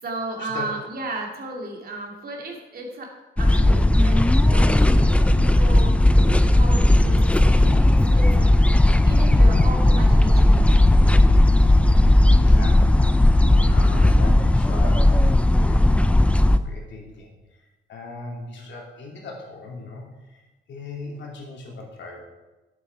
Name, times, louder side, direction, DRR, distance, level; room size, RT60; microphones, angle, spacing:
voice 1, 0.0-6.0 6.5-11.2, right 1 dB, 50° right, 0 dB, 2.6 m, -35 dB
sound 1, 3.4-16.6, left 1 dB, 5° left, 0.5 m, -16 dB
voice 2, 12.2-15.9 16.4-22.2, left 3 dB, 65° left, -1 dB, 3.0 m, -39 dB
11.0 x 8.3 x 4.7 m, 1.1 s
cardioid pair, 90°, 20 cm